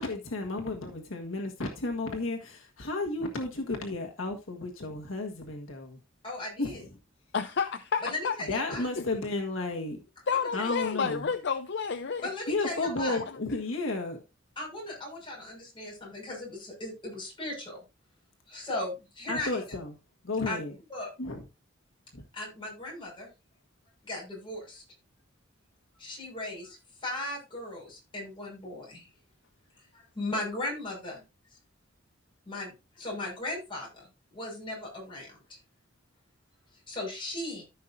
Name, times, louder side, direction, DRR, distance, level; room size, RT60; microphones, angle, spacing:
voice 1, 0.0-6.0 6.6-6.9 8.5-10.0 10.5-11.3 12.5-14.2 19.3-20.0 20.2-20.7 21.2-21.4 22.1-22.2, left 2 dB, 75° left, 1.6 m, -33 dB
voice 2, 6.2-6.8 8.0-8.9 10.6-10.7 12.2-13.2 14.6-17.8 18.5-19.6 20.5-20.6 20.9-21.1 22.3-23.3 24.0-24.8 26.0-29.1 29.9-31.2 32.5-35.4 36.9-37.6, left 1 dB, 25° left, 6.1 m, -37 dB
voice 3, 7.3-8.3 9.0-9.1 10.3-12.3, left 6 dB, 60° left, 0.6 m, -30 dB
14.0 x 5.7 x 2.6 m
head